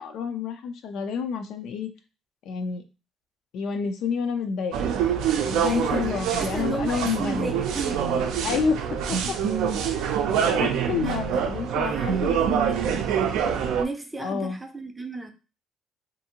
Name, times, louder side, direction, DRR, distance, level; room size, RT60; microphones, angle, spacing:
voice 1, 0.0-1.9 2.4-2.8 3.5-4.9 5.4-7.6 8.4-9.2 9.4-9.8 10.3-13.0 14.2-14.6, left 6 dB, 70° left, 7 dB, 0.4 m, -29 dB
sound 1, 4.7-13.8, right 8 dB, 85° right, 0.4 m, -25 dB
voice 2, 5.6-8.4 11.0-11.4 11.8-13.1 13.6-15.3, right 3 dB, 10° right, 5 dB, 0.5 m, -34 dB
2.6 x 2.6 x 2.8 m, 0.30 s
cardioid pair, 125°, 0 cm